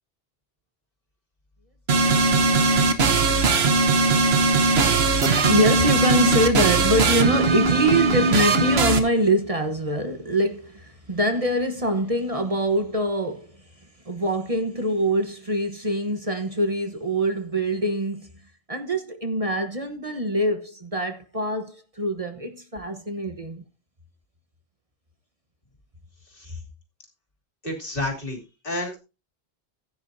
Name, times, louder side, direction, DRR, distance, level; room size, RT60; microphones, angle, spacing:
sound 1, 1.9-9.0, right 3 dB, 85° right, 1.4 m, -19 dB
voice 1, 5.4-13.6 14.0-18.3 18.7-23.6, equal, 35° right, 1.3 m, -24 dB
voice 2, 27.6-29.0, left 1 dB, 60° left, 3.1 m, -30 dB
16.0 x 9.5 x 2.7 m
omnidirectional pair, 1.0 m